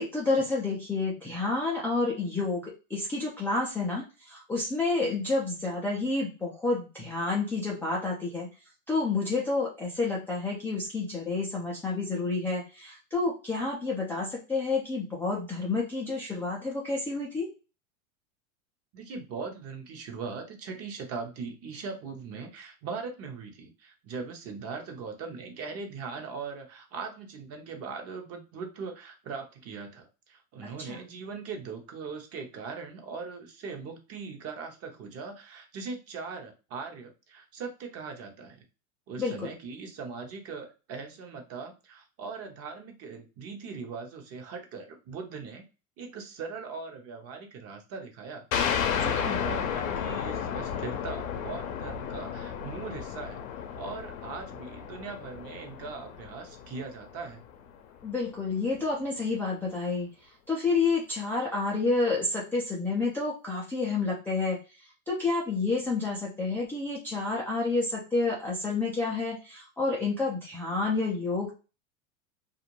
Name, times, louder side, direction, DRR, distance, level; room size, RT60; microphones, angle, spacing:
voice 1, 0.0-8.5 8.9-17.5 30.6-31.0 39.2-39.5 49.0-49.4 58.0-71.5, left 3 dB, 5° left, -6 dB, 0.3 m, -29 dB
voice 2, 18.9-38.6 39.1-45.6 46.0-53.4 53.8-57.4, right 5 dB, 35° right, 4 dB, 0.8 m, -40 dB
sound 1, 48.5-57.7, left 8 dB, 80° left, 0.7 m, -33 dB
2.5 x 2.1 x 3.0 m, 0.31 s
hypercardioid pair, 115°, 41 cm